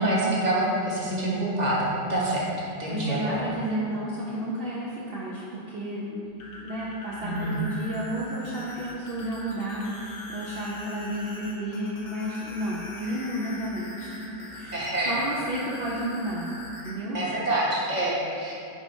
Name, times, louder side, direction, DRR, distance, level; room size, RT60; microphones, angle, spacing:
voice 1, 0.0-2.5 2.8-3.4 7.2-7.6 14.7-15.1 17.1-18.5, right 1 dB, 25° right, -6 dB, 1.4 m, -26 dB
voice 2, 2.9-6.3 6.6-16.5 16.8-17.2, right 1 dB, 45° right, -6 dB, 0.8 m, -32 dB
sound 1, 6.2-16.9, left 1 dB, 85° left, 1.8 m, -42 dB
10.0 x 4.2 x 4.5 m, 2.5 s
omnidirectional pair, 1.9 m